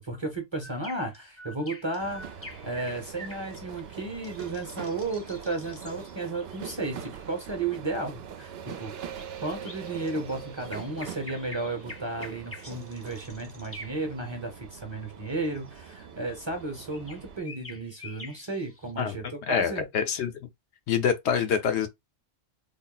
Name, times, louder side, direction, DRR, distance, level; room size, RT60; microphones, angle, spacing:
voice 1, 0.0-8.9 9.4-19.8, right 2 dB, 25° right, 0.8 m, -34 dB
sound 1, 0.6-7.5 8.4-14.3 15.3-18.9, left 1 dB, 15° left, 0.5 m, -47 dB
sound 2, 2.0-17.4, right 8 dB, 65° right, 0.7 m, -43 dB
voice 2, 19.5-20.3 20.9-21.9, left 7 dB, 70° left, 0.8 m, -26 dB
3.5 x 2.0 x 3.9 m
omnidirectional pair, 1.2 m